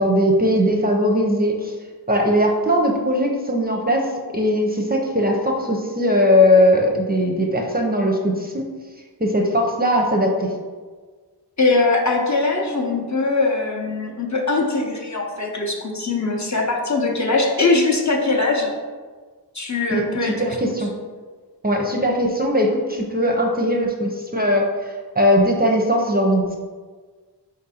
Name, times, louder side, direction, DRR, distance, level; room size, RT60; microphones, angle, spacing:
voice 1, 0.0-1.7 2.1-8.7 9.2-10.5 19.9-20.9 21.6-26.6, equal, 25° right, 0 dB, 0.5 m, -19 dB
voice 2, 11.6-18.7 19.5-20.6, left 3 dB, 45° left, 0 dB, 0.7 m, -21 dB
4.2 x 2.6 x 4.1 m, 1.5 s
wide cardioid pair, 55°, 41 cm